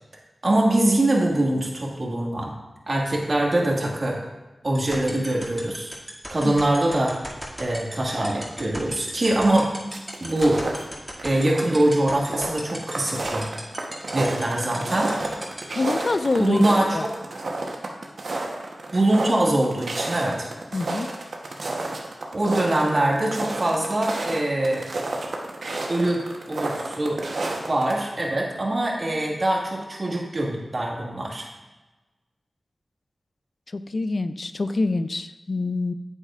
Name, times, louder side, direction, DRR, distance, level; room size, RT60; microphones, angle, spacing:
voice 1, 0.4-2.5 2.9-4.2 4.6-5.9 6.3-7.1 7.6-9.7 10.2-10.6 11.2-13.5 14.1-15.3 16.4-17.1 18.9-20.5 22.3-24.9 25.9-26.2 26.5-27.2 27.7-31.5, right 1 dB, 50° right, -2 dB, 1.8 m, -23 dB
sound 1, 4.7-15.6, equal, 10° right, 2.3 m, -34 dB
sound 2, 9.9-10.9 11.2-11.8 12.1-28.0, right 2 dB, 75° right, 1.0 m, -31 dB
voice 2, 15.8-16.6 16.9-17.1 20.7-21.1 33.7-35.9, left 3 dB, 60° left, 12 dB, 0.4 m, -25 dB
8.5 x 8.1 x 2.5 m, 1.1 s
cardioid pair, 40°, 0 cm